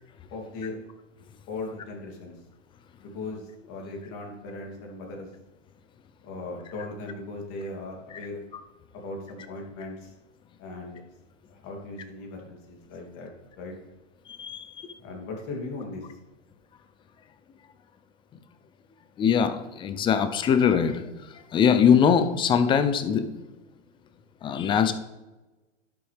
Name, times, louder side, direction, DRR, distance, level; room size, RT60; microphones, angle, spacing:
voice 1, 0.3-0.8 1.5-2.3 3.0-5.3 6.2-8.4 8.9-10.1 10.6-11.0 11.5-13.3 13.6-13.7 15.0-16.0, left 2 dB, 40° left, 0 dB, 3.0 m, -38 dB
voice 2, 14.4-14.9 19.2-21.0 21.5-23.4 24.4-24.9, left 7 dB, 15° left, 11 dB, 0.5 m, -22 dB
11.0 x 7.9 x 3.5 m, 1.1 s
hypercardioid pair, 135°, 37 cm